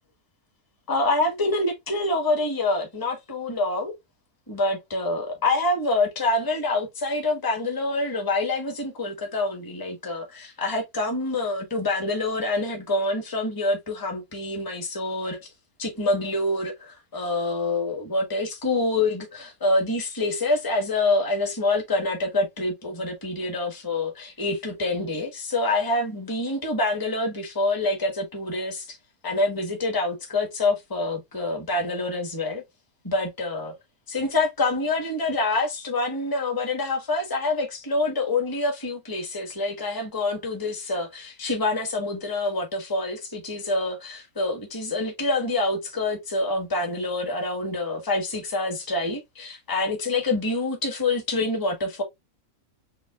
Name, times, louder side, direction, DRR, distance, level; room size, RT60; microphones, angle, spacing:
voice 1, 0.9-3.9 4.5-15.4 15.8-29.0 29.2-32.6 33.0-33.8 34.1-52.0, left 2 dB, 15° left, 1.2 m, -26 dB
6.7 x 2.6 x 2.4 m
omnidirectional pair, 1.6 m